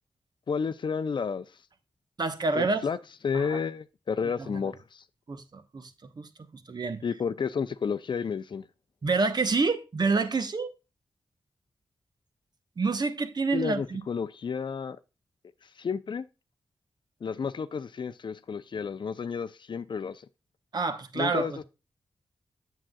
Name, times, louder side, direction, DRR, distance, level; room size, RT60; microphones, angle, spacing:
voice 1, 0.5-1.5 2.5-3.0 3.2-5.0 7.0-8.7 13.5-15.0 15.8-16.2 17.2-20.2 21.2-21.6, left 6 dB, 60° left, 0.5 m, -31 dB
voice 2, 2.2-2.8 3.3-3.6 4.4-4.6 5.3-7.0 9.0-10.7 12.8-14.0 20.7-21.6, right 4 dB, 50° right, 1.0 m, -28 dB
7.6 x 7.5 x 2.3 m
cardioid pair, 60°, 9 cm